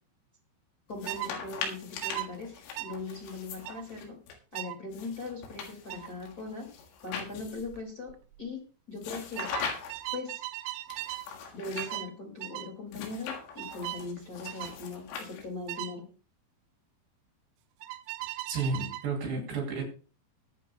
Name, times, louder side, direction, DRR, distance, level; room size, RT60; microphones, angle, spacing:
sound 1, 0.9-4.3 4.9-7.8 9.0-10.1 10.9-12.0 12.9-15.7, left 6 dB, 80° left, 4.4 m, -41 dB
voice 1, 0.9-2.5 2.8-4.2 4.5-6.7 7.0-8.1 8.4-8.6 8.9-9.5 10.1-10.4 11.5-16.0, left 3 dB, 35° left, 1.4 m, -40 dB
sound 2, 1.1-1.3 2.0-2.3 2.8-3.0 3.7-3.8 4.6-4.8 5.9-6.1 7.6-7.8 8.1-8.5 9.4-11.3 11.8-12.1 12.4-12.7 13.6-14.1 14.5-14.8 15.7-16.0 17.8-19.1, right 16 dB, 85° right, 3.4 m, -38 dB
voice 2, 18.5-19.8, right 4 dB, 60° right, 5.1 m, -31 dB
21.5 x 8.6 x 2.3 m
omnidirectional pair, 5.9 m